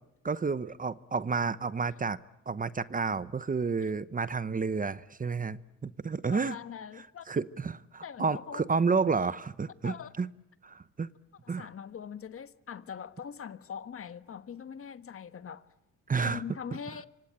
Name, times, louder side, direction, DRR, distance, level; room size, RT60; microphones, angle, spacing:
voice 1, 0.2-2.2 2.5-6.6 7.0-10.3 10.6-11.1 11.5-11.7 16.1-16.4, right 5 dB, 25° right, 0.9 m, -30 dB
voice 2, 6.3-7.3 8.0-8.6 9.8-10.1 11.4-15.6 16.2-17.1, left 7 dB, 45° left, 1.4 m, -42 dB
25.5 x 25.0 x 8.9 m
cardioid pair, 90°, 30 cm